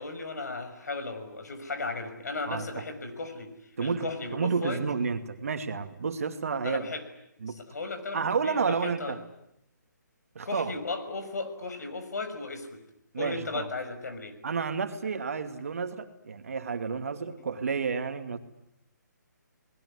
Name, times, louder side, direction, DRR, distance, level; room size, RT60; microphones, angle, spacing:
voice 1, 0.0-3.5 3.8-4.8 6.6-7.0 7.7-9.2 10.4-12.8 13.1-14.4 17.4-17.5, left 3 dB, 60° left, 8 dB, 6.1 m, -35 dB
voice 2, 2.5-2.8 3.8-6.8 7.4-7.6 8.1-9.2 10.3-10.7 13.1-13.7 14.4-18.4, right 5 dB, 50° right, 7 dB, 2.5 m, -31 dB
29.5 x 20.5 x 9.9 m, 0.80 s
hypercardioid pair, 175°, 10 cm